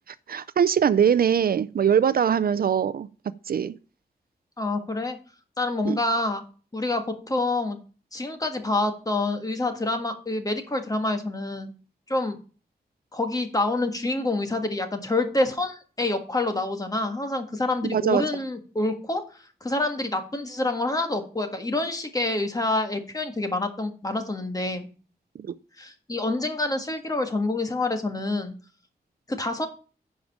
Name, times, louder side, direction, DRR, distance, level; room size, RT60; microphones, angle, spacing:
voice 1, 0.3-3.1 3.5-3.7 5.8-6.0 17.9-18.2, right 8 dB, 60° right, 0.4 m, -22 dB
voice 2, 4.6-5.2 5.6-6.4 6.7-7.8 8.1-11.7 12.1-12.4 13.1-24.9 25.8-28.5 29.3-29.7, left 2 dB, 20° left, 1.5 m, -27 dB
10.0 x 5.1 x 7.3 m
wide cardioid pair, 155°, 17 cm